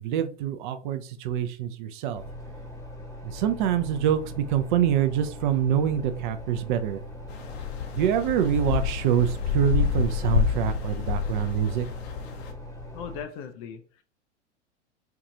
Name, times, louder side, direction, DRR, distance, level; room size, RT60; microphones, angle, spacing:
voice 1, 0.0-2.2 3.2-7.0 7.9-11.9, right 10 dB, 45° right, 9 dB, 0.5 m, -25 dB
sound 1, 2.2-13.2, left 1 dB, 10° left, 0.9 m, -41 dB
sound 2, 7.3-12.5, left 8 dB, 60° left, 0.9 m, -28 dB
voice 2, 12.9-14.0, left 7 dB, 30° left, 8 dB, 0.3 m, -38 dB
4.6 x 2.4 x 2.7 m, 0.40 s
figure-of-eight pair, 100°, 36 cm